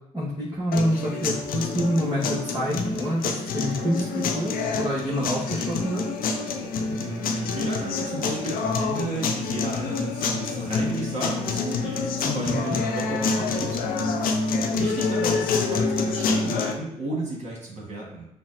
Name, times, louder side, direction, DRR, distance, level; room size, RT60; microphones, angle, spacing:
voice 1, 0.1-6.0 12.6-12.8, equal, 25° right, -7 dB, 1.3 m, -27 dB
sound 1, 0.7-16.7, left 4 dB, 70° left, 0.5 m, -27 dB
voice 2, 6.9-14.1 14.7-18.3, right 1 dB, 45° right, -4 dB, 1.4 m, -33 dB
5.7 x 2.1 x 2.6 m, 0.85 s
supercardioid pair, 50°, 16 cm